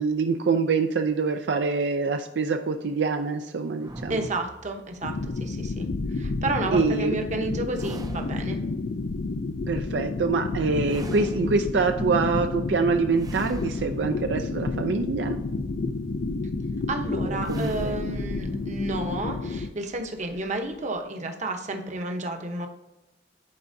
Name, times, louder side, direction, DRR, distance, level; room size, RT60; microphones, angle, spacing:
voice 1, 0.0-4.3 6.7-7.1 9.7-15.4 17.3-18.0, right 4 dB, 75° right, 5 dB, 0.5 m, -25 dB
sound 1, 3.8-5.3 7.7-8.8 10.8-12.0 13.1-15.0 17.4-21.0, right 1 dB, 20° right, 0.5 m, -41 dB
voice 2, 4.1-8.6 16.9-22.7, right 2 dB, 40° right, 4 dB, 0.9 m, -31 dB
sound 2, 5.0-19.7, left 3 dB, 60° left, 0.5 m, -30 dB
10.5 x 4.6 x 2.7 m, 0.99 s
head